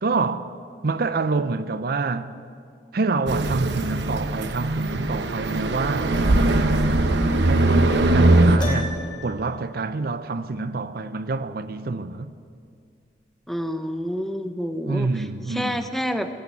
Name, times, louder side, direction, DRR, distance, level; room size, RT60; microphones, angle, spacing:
voice 1, 0.0-0.5 0.8-2.4 2.9-12.3 14.9-15.8, right 3 dB, 60° right, 0.5 m, -27 dB
sound 1, 3.3-8.6, right 2 dB, 85° right, 1.0 m, -20 dB
Piano, 8.6-9.4, equal, 25° left, 3.5 m, -32 dB
voice 2, 13.5-16.3, equal, ahead, 0.7 m, -28 dB
16.0 x 8.9 x 9.3 m
head